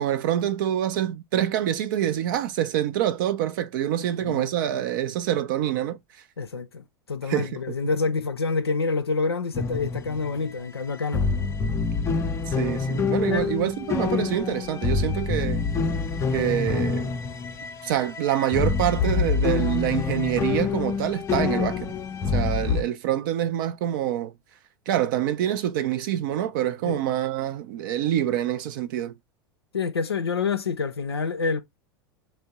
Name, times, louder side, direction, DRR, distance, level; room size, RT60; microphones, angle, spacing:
voice 1, 0.0-6.2 7.3-7.8 12.5-15.6 16.3-17.1 17.8-22.0 22.3-24.3 24.9-29.1, right 11 dB, 55° right, 0.4 m, -26 dB
voice 2, 6.4-11.3 13.3-13.5 26.9-27.0 29.7-31.6, left 4 dB, 85° left, 0.4 m, -27 dB
sound 1, 9.5-10.5 10.8-10.9 11.1-22.8, left 5 dB, 20° left, 0.5 m, -26 dB
3.4 x 2.0 x 3.9 m
figure-of-eight pair, 85°, 13 cm